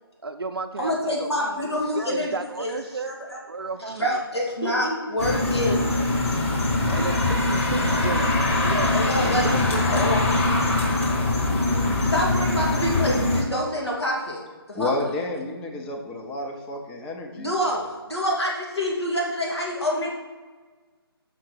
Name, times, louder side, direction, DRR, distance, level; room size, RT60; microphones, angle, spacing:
voice 1, 0.2-3.1 3.5-4.2 6.9-10.1, right 4 dB, 65° right, 6 dB, 0.5 m, -33 dB
voice 2, 0.8-2.8 3.0-3.4 3.8-5.9 8.9-10.2 11.7-14.4 14.8-14.9 17.4-17.8 18.1-20.1, left 1 dB, 90° left, -3 dB, 2.4 m, -26 dB
sound 1, 5.2-13.4, left 2 dB, 30° left, 1.3 m, -22 dB
voice 3, 14.7-17.5, left 2 dB, 5° left, 1 dB, 0.5 m, -30 dB
5.9 x 5.7 x 6.3 m, 1.4 s
figure-of-eight pair, 145°, 13 cm